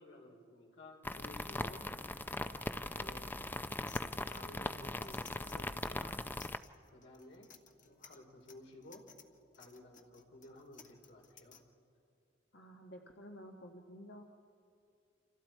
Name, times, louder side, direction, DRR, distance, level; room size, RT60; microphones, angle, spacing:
voice 1, 0.0-1.9 2.9-3.6 4.3-6.2 6.9-7.5 7.8-9.1 9.6-11.6, left 1 dB, 85° left, 0 dB, 4.7 m, -55 dB
sound 1, 1.0-6.6, left 2 dB, 10° left, 0.5 m, -40 dB
sound 2, 3.9-11.6, left 7 dB, 45° left, 1.4 m, -58 dB
voice 2, 12.5-14.2, equal, 65° left, 1 dB, 1.4 m, -52 dB
28.5 x 27.5 x 4.6 m, 2.4 s
head